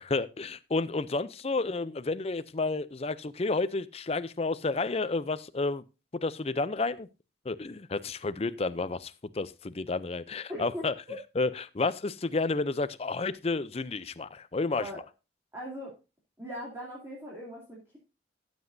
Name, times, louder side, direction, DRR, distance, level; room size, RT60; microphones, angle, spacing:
voice 1, 0.0-5.8 6.1-7.1 7.5-10.9 11.4-14.9, left 3 dB, 30° left, 0.5 m, -31 dB
voice 2, 10.5-11.2 14.7-15.0 15.5-15.9 16.4-18.0, equal, 15° right, 2.8 m, -40 dB
14.5 x 7.9 x 2.7 m
head